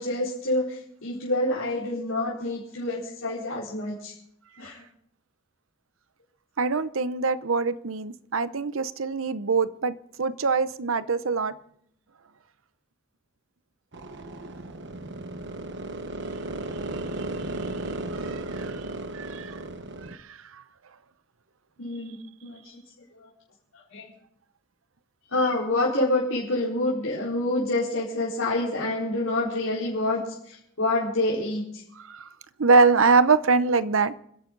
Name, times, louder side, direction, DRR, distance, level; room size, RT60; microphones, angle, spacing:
voice 1, 0.0-4.1 4.6-4.8 21.8-22.1 22.4-22.8 23.2-23.3 23.7-24.1 25.3-31.8, left 2 dB, 80° left, -8 dB, 4.6 m, -27 dB
voice 2, 6.6-11.5 16.9-17.9 18.2-18.9 19.1-19.6 20.1-20.4 32.0-32.3 32.6-34.1, right 4 dB, 80° right, 14 dB, 0.8 m, -24 dB
sound 1, 13.9-20.1, right 2 dB, 60° right, 1.2 m, -35 dB
29.5 x 11.0 x 4.0 m, 0.70 s
head